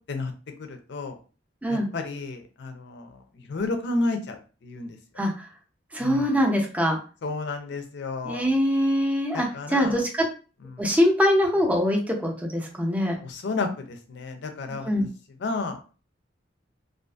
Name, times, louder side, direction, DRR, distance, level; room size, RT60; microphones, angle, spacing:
voice 1, 0.6-1.2 1.7-3.2 3.5-5.0 6.0-6.5 7.2-8.5 9.3-10.0 10.7-10.9 13.2-14.9 15.4-15.8, left 3 dB, 65° left, 6 dB, 0.5 m, -31 dB
voice 2, 5.2-5.5 5.9-7.0 8.2-10.1 10.8-13.2 14.8-15.1, equal, 10° right, 0 dB, 0.5 m, -23 dB
2.5 x 2.4 x 2.3 m, 0.36 s
head